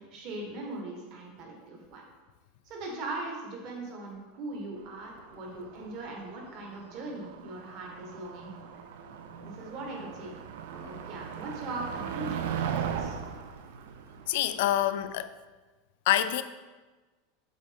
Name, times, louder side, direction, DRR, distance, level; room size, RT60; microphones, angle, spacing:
voice 1, 0.0-2.0 2.7-8.7 9.4-10.3 10.7-13.2, right 2 dB, 40° right, 0 dB, 1.3 m, -40 dB
Motor vehicle (road), 4.8-15.2, right 8 dB, 75° right, 0.5 m, -39 dB
voice 2, 14.3-15.3 16.1-16.4, left 12 dB, 60° left, 12 dB, 0.3 m, -26 dB
7.3 x 3.8 x 3.5 m, 1.3 s
supercardioid pair, 165°, 0 cm